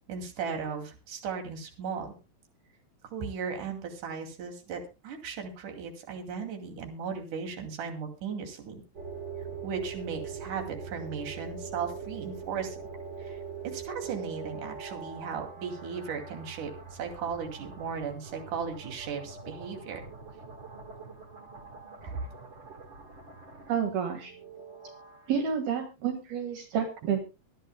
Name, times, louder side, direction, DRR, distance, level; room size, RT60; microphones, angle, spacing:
voice 1, 0.1-2.2 3.1-8.8 9.6-12.8 13.2-13.4 13.6-16.7 17.0-20.0 22.0-22.3, right 6 dB, 55° right, 3 dB, 3.7 m, -36 dB
sound 1, 8.9-25.4, right 5 dB, 35° right, 2.7 m, -43 dB
voice 2, 23.7-24.3 25.3-27.2, right 7 dB, 70° right, 4 dB, 3.4 m, -29 dB
24.5 x 10.0 x 2.2 m, 0.29 s
omnidirectional pair, 4.8 m